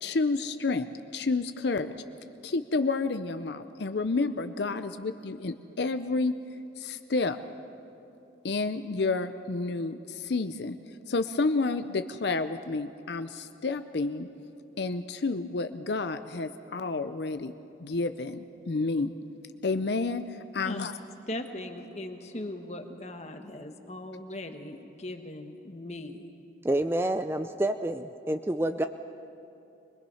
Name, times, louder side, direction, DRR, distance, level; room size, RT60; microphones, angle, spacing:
voice 1, 0.0-0.9 1.1-1.9 2.4-6.3 6.8-7.4 8.4-10.8 11.1-14.3 14.8-17.5 17.8-19.2 19.6-20.9, left 3 dB, 60° left, 0.6 m, -30 dB
voice 2, 21.3-26.3, left 1 dB, 35° left, 1.3 m, -39 dB
voice 3, 26.6-28.9, right 1 dB, 10° right, 0.4 m, -28 dB
23.0 x 21.5 x 5.6 m
head